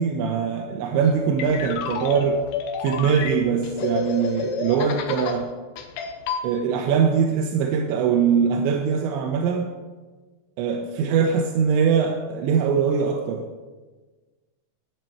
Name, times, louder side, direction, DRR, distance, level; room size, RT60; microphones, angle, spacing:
voice 1, 0.0-2.4 2.8-5.5 6.4-9.7 10.6-13.5, right 6 dB, 80° right, 3 dB, 2.7 m, -22 dB
sound 1, 1.0-5.4 5.8-6.4, left 6 dB, 85° left, 2.3 m, -30 dB
11.0 x 10.5 x 4.5 m, 1.3 s
omnidirectional pair, 5.9 m